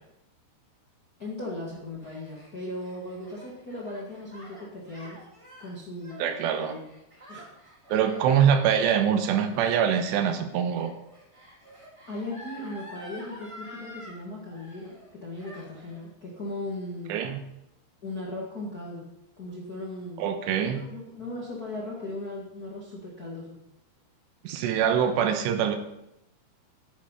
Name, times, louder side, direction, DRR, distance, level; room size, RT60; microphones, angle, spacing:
voice 1, 1.2-5.2 5.6-6.8 7.3-7.5 12.1-17.2 18.0-19.1 19.4-20.2 20.6-23.6, left 1 dB, 55° left, -3 dB, 1.0 m, -37 dB
Gasp, 1.8-14.2 14.5-15.1 15.4-16.0, equal, 10° right, 1.7 m, -48 dB
voice 2, 6.2-6.7 7.9-10.9 17.1-17.4 20.2-20.8 24.4-25.8, right 8 dB, 75° right, 7 dB, 3.0 m, -24 dB
9.9 x 9.8 x 5.6 m, 0.85 s
omnidirectional pair, 5.3 m